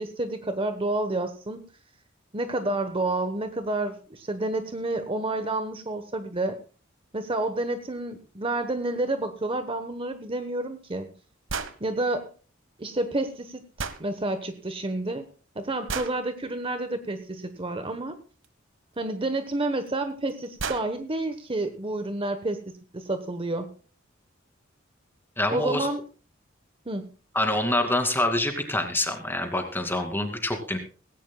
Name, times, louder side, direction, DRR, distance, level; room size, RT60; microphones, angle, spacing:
voice 1, 0.0-1.6 2.3-6.6 7.1-11.1 11.8-12.3 12.8-15.3 15.5-18.2 19.0-23.7 25.5-26.0 26.9-27.1, right 2 dB, 30° right, 8 dB, 1.1 m, -29 dB
sound 1, 11.5-11.8 13.8-14.0 15.9-16.2 18.4-18.5 19.9-20.0 20.3-20.4 20.6-20.9, right 5 dB, 70° right, 1.3 m, -32 dB
voice 2, 25.4-25.9 27.3-30.8, left 1 dB, 10° left, 5 dB, 2.5 m, -26 dB
18.5 x 17.0 x 2.3 m, 0.37 s
head